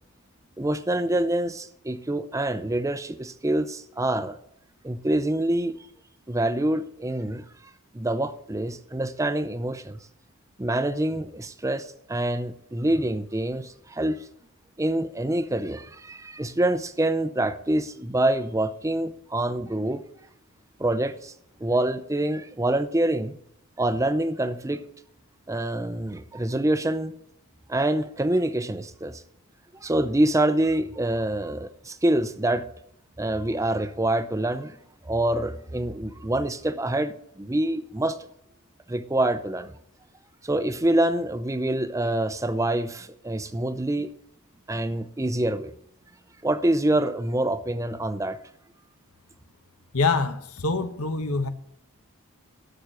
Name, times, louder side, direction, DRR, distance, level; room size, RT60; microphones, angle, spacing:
voice 1, 0.6-4.4 4.8-5.8 6.3-7.4 7.9-10.0 10.6-14.3 14.8-20.0 20.8-21.3 21.6-23.4 23.8-24.8 25.5-27.1 27.7-29.2 29.8-32.7 33.2-34.8 35.0-38.2 38.9-39.7 40.4-44.1 44.7-45.7 46.4-48.4, right 1 dB, 15° right, 0.6 m, -26 dB
voice 2, 49.9-51.5, left 4 dB, 80° left, 1.2 m, -25 dB
11.5 x 7.1 x 7.8 m
head